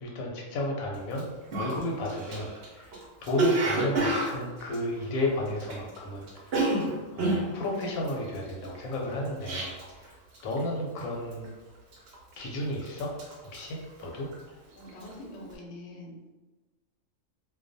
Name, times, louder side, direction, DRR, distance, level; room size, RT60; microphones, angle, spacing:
voice 1, 0.0-2.5 2.8-2.9 3.2-6.2 7.1-9.7 10.4-11.4 12.4-13.1 13.4-14.3, left 1 dB, 85° left, 0 dB, 1.0 m, -32 dB
Cough, 1.1-1.2 1.5-6.0 6.2-10.1 10.3-10.7 11.0-11.5 11.9-12.5 12.8-14.5 14.8-15.1, right 2 dB, 60° right, 0.7 m, -29 dB
voice 2, 14.7-16.2, left 1 dB, 65° left, -1 dB, 0.8 m, -44 dB
2.3 x 2.2 x 2.5 m, 1.2 s
omnidirectional pair, 1.4 m